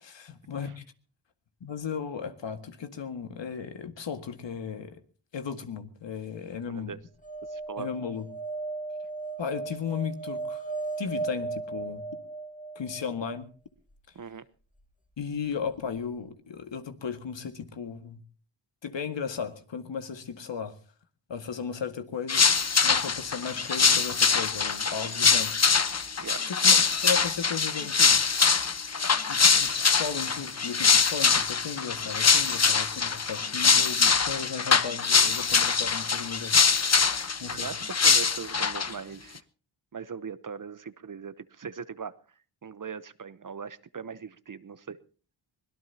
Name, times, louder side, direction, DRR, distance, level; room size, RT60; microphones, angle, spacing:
voice 1, 0.3-0.8 1.6-5.0 5.3-7.0 7.8-8.3 9.4-10.6 11.0-12.1 12.8-13.5 15.2-18.2 18.8-20.7 21.3-22.5 22.8-25.5 26.5-28.3 29.3-36.6 37.4-37.7, left 6 dB, 65° left, 1.9 m, -35 dB
sound 1, 7.2-13.4 15.7-15.8 15.9-16.0, right 3 dB, 15° left, 2.1 m, -36 dB
voice 2, 7.5-7.9 14.1-14.4 26.2-26.4 37.5-39.4 39.9-42.1 42.6-45.0, right 6 dB, 40° right, 0.9 m, -40 dB
sound 2, 22.3-38.9, left 5 dB, 35° left, 1.0 m, -23 dB
24.0 x 17.5 x 2.9 m
cardioid pair, 50°, 48 cm